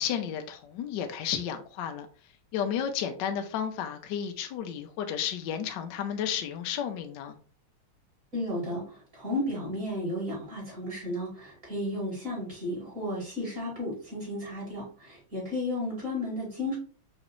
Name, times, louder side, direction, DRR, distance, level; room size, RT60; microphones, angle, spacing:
voice 1, 0.0-2.1 2.5-7.3, left 8 dB, 70° left, 1.1 m, -32 dB
voice 2, 8.3-16.8, left 1 dB, 40° right, 2.5 m, -33 dB
4.9 x 3.1 x 3.0 m
omnidirectional pair, 2.3 m